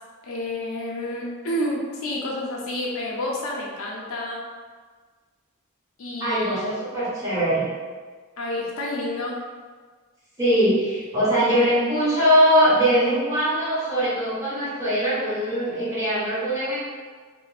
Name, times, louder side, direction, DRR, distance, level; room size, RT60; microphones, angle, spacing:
voice 1, 0.2-4.4 6.0-6.8 8.4-9.4, left 1 dB, 65° left, -3 dB, 0.5 m, -29 dB
voice 2, 6.2-7.7 10.4-16.8, equal, 15° right, -12 dB, 1.1 m, -21 dB
2.4 x 2.0 x 3.2 m, 1.5 s
head